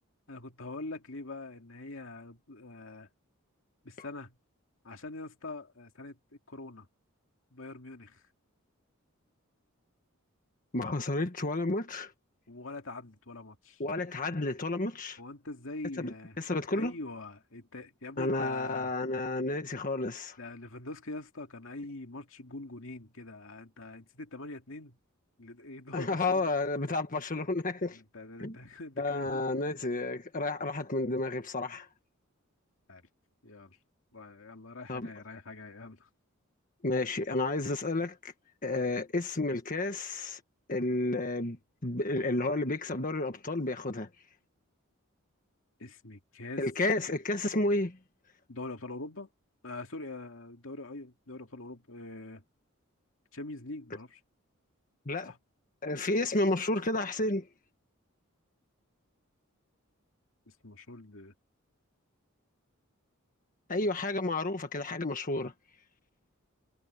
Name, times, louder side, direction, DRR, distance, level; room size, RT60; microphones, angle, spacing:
voice 1, 0.3-3.1 3.8-4.4 4.8-6.9 7.5-8.2 12.5-13.8 15.2-16.4 16.7-18.9 20.4-25.0 25.4-26.6 27.9-29.4 32.9-33.1 33.4-33.8 34.1-36.1 45.8-46.6 48.5-49.3 49.6-52.4 53.3-54.2 55.2-55.4 60.6-61.3, left 2 dB, 70° left, 2.4 m, -43 dB
voice 2, 10.7-12.1 13.8-15.2 16.0-16.9 18.2-20.4 25.9-28.0 28.4-28.6 29.0-31.9 34.9-35.1 36.8-38.3 38.6-40.4 40.7-44.1 46.6-48.0 55.0-55.3 55.8-57.5 63.7-65.5, left 2 dB, 40° left, 1.5 m, -31 dB
head